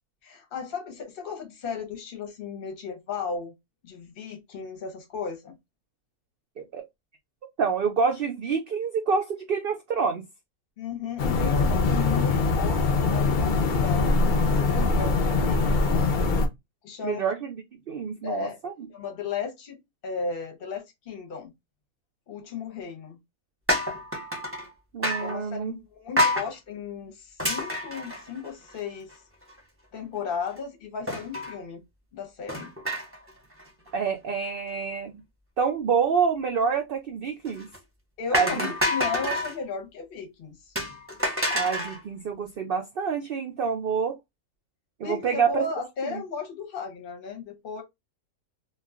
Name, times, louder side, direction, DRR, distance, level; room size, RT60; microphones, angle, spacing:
voice 1, 0.2-3.5 3.8-5.6 10.8-16.1 16.8-17.2 18.2-18.6 18.9-21.5 22.3-23.2 25.2-29.1 29.9-31.8 32.1-32.7 38.2-40.8 45.0-47.8, left 5 dB, 50° left, 0.8 m, -35 dB
voice 2, 7.6-10.2 17.0-17.6 17.9-18.7 24.9-25.7 33.9-35.2 35.6-37.7 38.3-38.7 41.5-44.2 45.0-45.6 46.1-46.2, right 6 dB, 85° right, 0.5 m, -27 dB
sound 1, 11.2-16.5, left 3 dB, 75° left, 0.4 m, -23 dB
sound 2, 23.7-24.7 25.0-25.4 26.2-26.5 27.4-28.8 29.1-29.2 29.5-29.6 31.1-31.6 32.5-33.3 33.6-33.9 37.4-37.8 38.3-39.6 40.8-42.0, left 1 dB, 15° right, 0.6 m, -28 dB
2.4 x 2.2 x 3.5 m
omnidirectional pair, 1.5 m